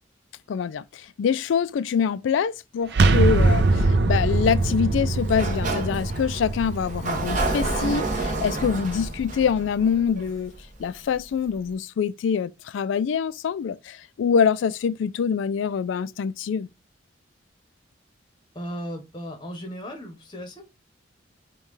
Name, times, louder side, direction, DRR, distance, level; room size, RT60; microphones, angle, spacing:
voice 1, 0.5-10.5 10.8-16.7, left 7 dB, 75° left, 0.3 m, -25 dB
sound 1, 2.9-8.6, right 2 dB, 60° right, 0.5 m, -22 dB
Sliding door, 5.2-10.9, right 2 dB, 40° right, 0.9 m, -29 dB
voice 2, 18.5-20.6, equal, 25° left, 0.8 m, -36 dB
5.4 x 2.3 x 3.1 m
head